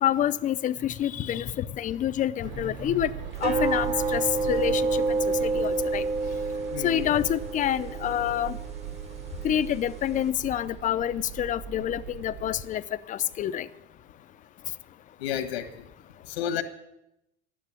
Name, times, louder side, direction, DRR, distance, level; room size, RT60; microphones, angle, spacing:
voice 1, 0.0-3.1 3.4-6.0 6.8-8.5 9.4-12.8 13.1-13.7, left 11 dB, 25° left, 14 dB, 0.5 m, -27 dB
sound 1, 2.4-12.6, right 9 dB, 40° right, 1.3 m, -39 dB
sound 2, 3.4-10.3, right 3 dB, 20° right, 1.0 m, -29 dB
voice 2, 6.7-7.1 15.2-15.8 16.2-16.6, left 9 dB, 85° left, 5 dB, 1.5 m, -31 dB
11.5 x 9.1 x 10.0 m, 0.88 s
supercardioid pair, 125°, 30 cm